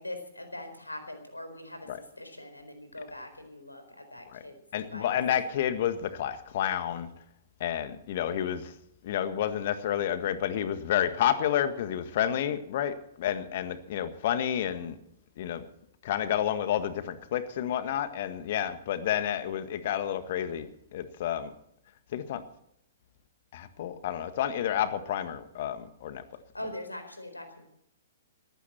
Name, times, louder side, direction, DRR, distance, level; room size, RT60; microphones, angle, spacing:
voice 1, 0.0-5.2 26.5-27.6, left 1 dB, 85° left, 7 dB, 4.3 m, -42 dB
voice 2, 4.7-7.1 7.6-8.7 9.0-15.0 15.4-15.6 16.0-21.5 22.1-22.4 23.5-26.2, left 10 dB, 45° left, 11 dB, 1.6 m, -30 dB
19.0 x 15.5 x 4.4 m, 0.75 s
figure-of-eight pair, 115°, 0 cm